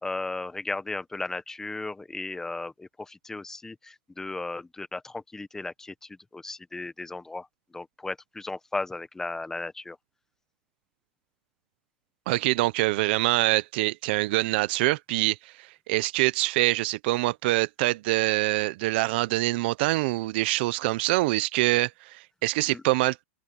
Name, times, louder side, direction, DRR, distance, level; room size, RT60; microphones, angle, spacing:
voice 1, 0.0-5.9 6.3-7.5 7.7-10.0 22.7-22.8, left 3 dB, 5° left, 1.0 m, -35 dB
voice 2, 12.3-15.4 15.9-23.2, right 20 dB, 55° right, 0.9 m, -25 dB
open air
supercardioid pair, 150°, 7 cm